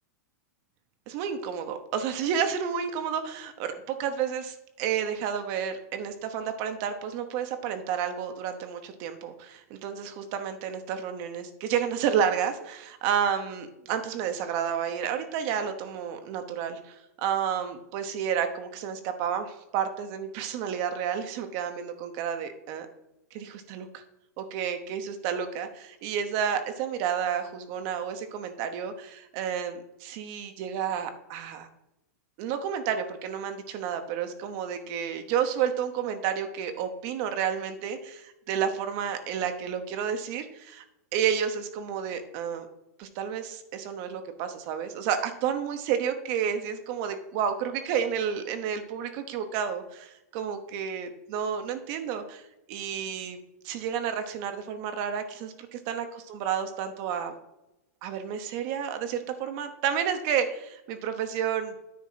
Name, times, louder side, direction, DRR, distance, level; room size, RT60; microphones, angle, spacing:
voice 1, 1.1-22.9 23.3-24.0 24.4-31.7 32.4-40.8 41.1-42.7 43.0-52.4 52.7-53.4 53.6-57.3 58.0-61.7, right 8 dB, 45° right, 7 dB, 0.9 m, -31 dB
9.5 x 3.7 x 5.7 m, 0.88 s
hypercardioid pair, 130°, 9 cm